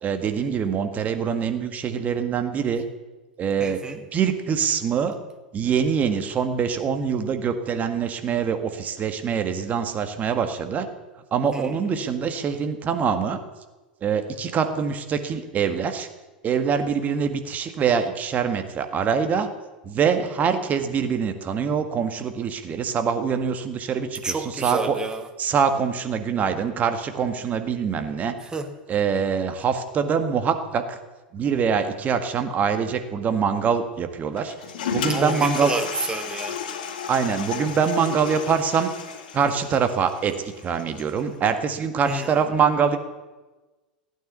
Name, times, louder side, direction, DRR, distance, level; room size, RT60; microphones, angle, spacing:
voice 1, 0.0-2.9 3.4-5.1 5.5-10.9 11.3-13.4 14.0-16.1 16.4-19.5 19.8-25.0 25.4-28.3 28.9-31.0 31.3-34.5 34.9-35.7 37.1-38.9 39.3-43.0, right 6 dB, 30° right, 7 dB, 1.8 m, -24 dB
voice 2, 3.6-4.0 11.5-11.8 24.2-25.3 28.4-28.7 35.1-36.6 42.1-42.3, right 3 dB, 15° right, 7 dB, 1.9 m, -30 dB
Toilet flush, 34.4-41.3, left 7 dB, 65° left, 2.3 m, -33 dB
16.0 x 9.3 x 8.3 m, 1.2 s
figure-of-eight pair, 85°, 5 cm